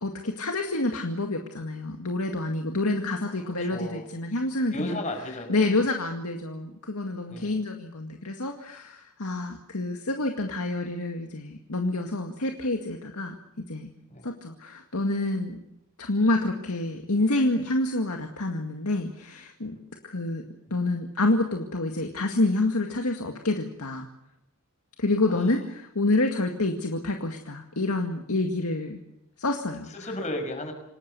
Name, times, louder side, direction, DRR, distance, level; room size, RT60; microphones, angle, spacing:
voice 1, 0.0-5.0 5.5-13.9 14.2-15.6 16.0-19.8 20.0-20.4 20.7-24.1 25.0-29.0 29.4-30.1, left 2 dB, 90° left, 3 dB, 2.0 m, -28 dB
voice 2, 3.4-4.1 4.7-5.6 7.3-7.6 14.1-14.3 25.3-25.4 30.0-30.7, left 1 dB, 35° left, 5 dB, 5.8 m, -34 dB
27.5 x 18.5 x 6.9 m, 0.85 s
head